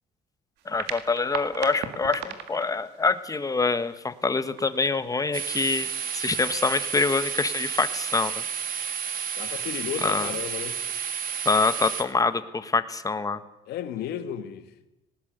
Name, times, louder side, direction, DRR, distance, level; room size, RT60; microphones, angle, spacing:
voice 1, 0.6-5.9 6.1-8.3 10.0-10.3 11.4-13.4, left 4 dB, 20° left, 1.4 m, -25 dB
sound 1, 0.6-7.5, right 9 dB, 85° right, 2.0 m, -41 dB
sound 2, 5.3-12.0, right 7 dB, 55° right, 2.7 m, -31 dB
voice 2, 9.4-10.8 13.7-14.7, left 10 dB, 75° left, 2.1 m, -33 dB
19.5 x 18.5 x 8.1 m
cardioid pair, 110°, 17 cm